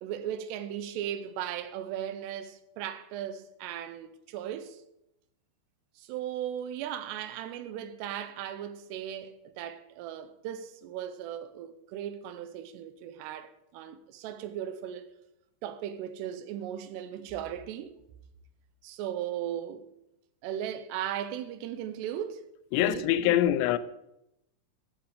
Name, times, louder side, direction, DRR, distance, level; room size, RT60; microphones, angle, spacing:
voice 1, 0.0-4.8 6.0-15.0 15.6-18.0 18.8-19.9 20.4-22.4 22.8-23.4, right 10 dB, 80° right, 2.8 m, -37 dB
voice 2, 22.7-23.8, left 13 dB, 85° left, 2.8 m, -24 dB
11.5 x 8.9 x 5.2 m
omnidirectional pair, 5.0 m